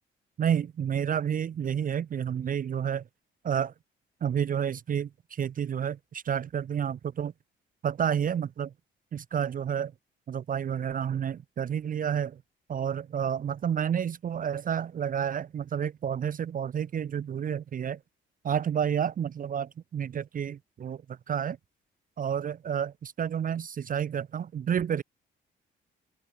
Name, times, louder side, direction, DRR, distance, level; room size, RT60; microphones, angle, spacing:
voice 1, 0.4-3.0 3.4-3.7 4.2-7.3 7.8-8.7 9.1-9.9 10.3-12.4 12.7-18.0 18.4-21.6 22.2-25.0, right 8 dB, 45° right, 0.7 m, -30 dB
open air
cardioid pair, 90°, 20 cm